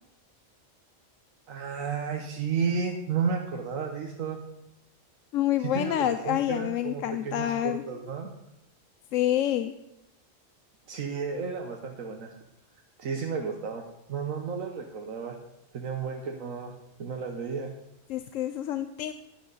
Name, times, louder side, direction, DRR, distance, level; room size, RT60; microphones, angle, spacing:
voice 1, 1.5-4.4 5.6-8.3 10.9-12.3 13.0-15.4 15.7-16.7 17.0-17.7, right 5 dB, 80° right, 2 dB, 1.4 m, -32 dB
voice 2, 5.3-7.8 9.1-9.7 18.1-19.1, left 12 dB, 75° left, 10 dB, 0.9 m, -27 dB
11.5 x 10.5 x 4.0 m, 0.90 s
omnidirectional pair, 1.4 m